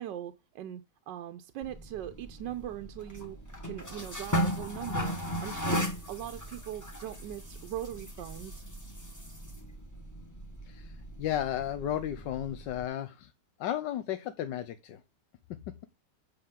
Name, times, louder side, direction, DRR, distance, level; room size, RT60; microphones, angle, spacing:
voice 1, 0.0-3.4 3.6-8.7, right 11 dB, 85° right, 1.3 m, -40 dB
sound 1, 1.6-12.8, equal, 10° left, 1.3 m, -37 dB
voice 2, 10.6-13.3 13.6-15.0 15.7-15.8, left 11 dB, 85° left, 1.3 m, -34 dB
7.9 x 6.5 x 3.6 m
omnidirectional pair, 1.9 m